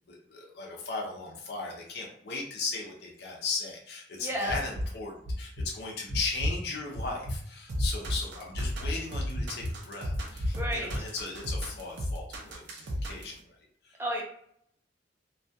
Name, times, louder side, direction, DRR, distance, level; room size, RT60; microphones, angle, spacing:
voice 1, 0.1-13.6 13.8-13.9, left 3 dB, 65° left, -2 dB, 0.5 m, -37 dB
voice 2, 4.2-4.5 10.5-10.9 14.0-14.2, equal, 15° right, -1 dB, 0.5 m, -31 dB
sound 1, 4.5-4.9 5.2-5.7 6.1-6.6 6.9-7.4 7.8-8.2 8.5-9.0 9.3-9.7 10.1-10.6 10.9-11.0, left 1 dB, 85° left, 1.0 m, -31 dB
sound 2, 7.7-13.4, equal, 90° right, 0.5 m, -34 dB
2.3 x 2.2 x 2.7 m, 0.67 s
head